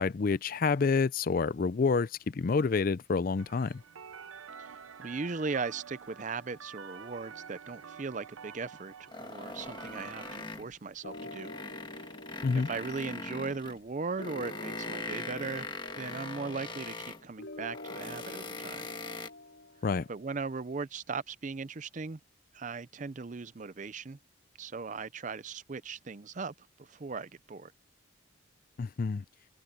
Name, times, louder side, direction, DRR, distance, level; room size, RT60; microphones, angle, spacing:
voice 1, 0.0-3.8 12.4-12.7 19.8-20.1 28.8-29.2, left 4 dB, 45° left, 0.4 m, -28 dB
sound 1, 3.4-10.4, right 6 dB, 85° right, 0.7 m, -48 dB
voice 2, 4.6-11.5 11.9-12.1 12.5-15.7 16.0-18.9 20.1-22.2 22.5-24.2 24.6-27.7, right 4 dB, 35° right, 0.5 m, -38 dB
sound 2, 9.1-10.7 11.1-13.8 14.2-17.2 17.7-19.3, left 3 dB, 20° left, 1.4 m, -41 dB
sound 3, 11.0-20.2, left 1 dB, 60° left, 4.3 m, -47 dB
open air
head